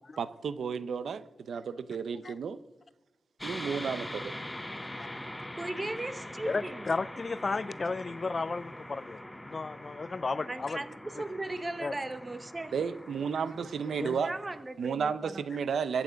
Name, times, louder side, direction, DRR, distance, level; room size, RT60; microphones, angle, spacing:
voice 1, 0.2-2.6 3.4-4.3 12.7-14.3 14.8-16.0, right 6 dB, 80° right, 0.6 m, -32 dB
sound 1, 3.4-14.6, left 1 dB, 10° left, 0.8 m, -43 dB
voice 2, 5.6-6.9 10.5-12.7 14.2-15.4, right 2 dB, 20° right, 0.9 m, -37 dB
voice 3, 6.5-9.2 9.4-10.8 11.2-11.3 11.8-12.0 14.0-14.2, left 4 dB, 35° left, 0.4 m, -34 dB
22.0 x 8.8 x 5.2 m
wide cardioid pair, 155°, 0 cm